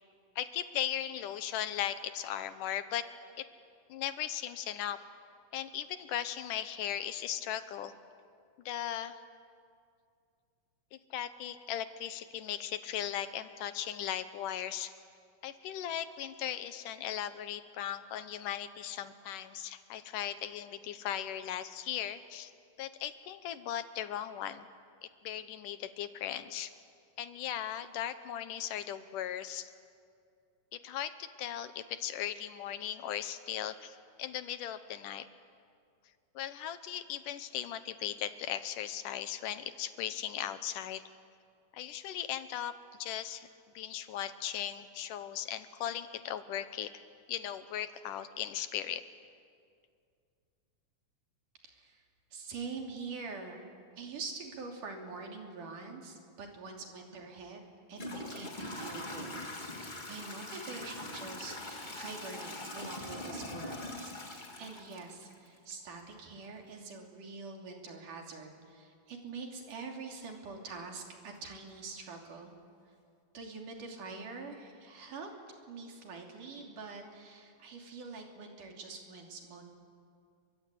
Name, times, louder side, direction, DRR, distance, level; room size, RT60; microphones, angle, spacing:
voice 1, 0.4-3.0 3.4-3.5 3.9-5.0 5.5-7.9 8.7-9.2 10.9-14.9 15.4-22.5 22.8-24.7 25.2-26.7 27.2-29.7 30.7-35.3 36.4-41.0 41.7-42.7 43.0-43.5 43.8-46.9 47.3-49.0, left 10 dB, 75° left, 11 dB, 2.4 m, -38 dB
voice 2, 51.6-52.0 52.3-53.6 54.0-57.6 57.9-59.4 60.1-72.5 73.3-75.3 75.7-79.6, right 4 dB, 65° right, 1 dB, 4.5 m, -45 dB
Toilet flush / Trickle dribble, 57.1-57.2 57.9-65.7, left 1 dB, 20° left, 1.3 m, -42 dB
29.5 x 24.0 x 8.4 m, 2.3 s
omnidirectional pair, 3.9 m